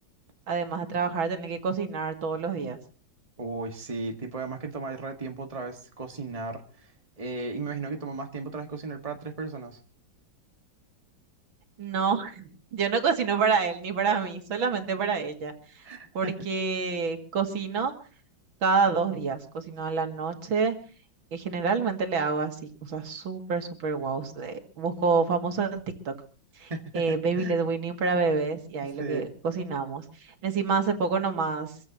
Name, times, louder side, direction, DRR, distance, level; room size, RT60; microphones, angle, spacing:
voice 1, 0.5-2.8 11.8-15.5 16.1-17.9 18.6-20.8 21.3-25.8 26.1-26.2 26.6-30.0 30.4-31.7, right 5 dB, 90° right, 5 dB, 2.8 m, -27 dB
voice 2, 3.4-6.9 7.2-9.8 15.8-16.3 26.7-27.6 29.0-29.3, right 3 dB, 20° right, 4 dB, 1.7 m, -35 dB
25.0 x 15.5 x 3.0 m, 0.38 s
omnidirectional pair, 2.1 m